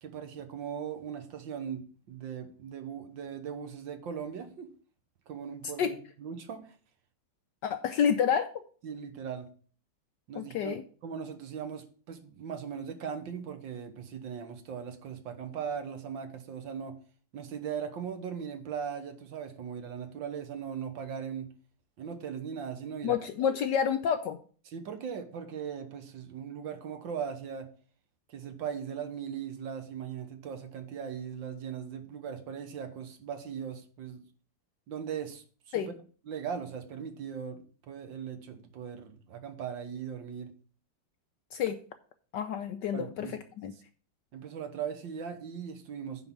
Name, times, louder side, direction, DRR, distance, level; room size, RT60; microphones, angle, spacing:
voice 1, 0.0-4.7 5.3-6.8 8.8-9.5 10.3-10.8 11.0-17.0 17.3-21.5 22.0-23.2 24.7-27.7 28.3-34.2 34.9-36.0 36.3-40.5 42.9-43.4 44.3-46.3, right 7 dB, 65° right, 1.7 m, -39 dB
voice 2, 7.6-8.5 10.3-10.8 23.0-24.4 35.7-35.9 41.5-41.8 42.3-43.3 43.6-43.7, left 8 dB, 70° left, 1.1 m, -29 dB
9.6 x 4.0 x 7.4 m
omnidirectional pair, 2.4 m